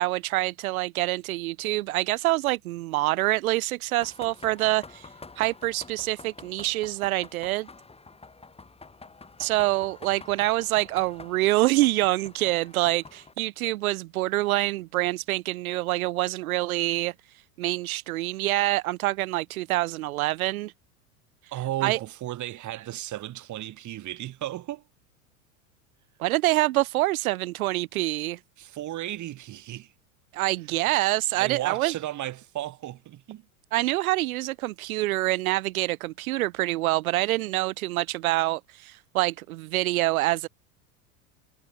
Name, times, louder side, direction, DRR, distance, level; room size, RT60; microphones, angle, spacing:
voice 1, 0.0-5.1 5.4-7.7 9.4-17.1 17.6-20.7 21.8-22.0 26.2-28.4 30.3-31.9 33.7-40.5, right 18 dB, 75° right, 0.8 m, -26 dB
sound 1, 3.9-13.3, left 4 dB, 15° left, 7.2 m, -48 dB
voice 2, 21.5-24.8 28.6-29.9 31.3-33.4, right 14 dB, 40° right, 6.5 m, -34 dB
hypercardioid pair, 100°, 43 cm